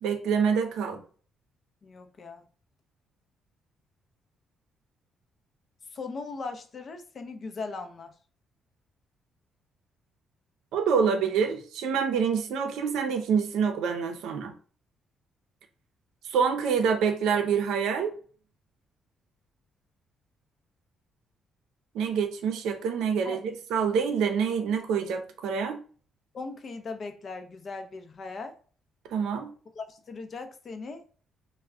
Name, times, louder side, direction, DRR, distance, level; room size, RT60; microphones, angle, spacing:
voice 1, 0.0-1.0 10.7-14.5 16.3-18.1 21.9-25.8 29.1-29.5, right 6 dB, 85° right, 0.5 m, -26 dB
voice 2, 1.8-2.4 5.9-8.1 23.2-23.4 26.3-28.6 29.8-31.1, left 4 dB, 50° left, 0.5 m, -39 dB
2.3 x 2.1 x 3.5 m
cardioid pair, 90°, 0 cm